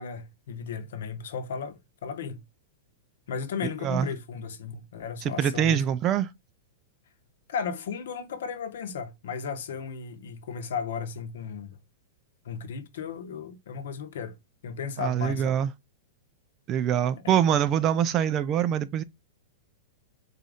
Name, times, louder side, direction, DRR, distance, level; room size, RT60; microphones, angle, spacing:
voice 1, 0.0-2.4 3.3-5.8 7.5-11.8 12.4-14.4 14.6-15.6 17.2-17.3, left 6 dB, 70° left, 0.9 m, -35 dB
voice 2, 5.4-6.3 15.0-15.7 16.7-19.0, right 9 dB, 20° right, 0.3 m, -24 dB
4.1 x 2.6 x 4.8 m
supercardioid pair, 170°, 0 cm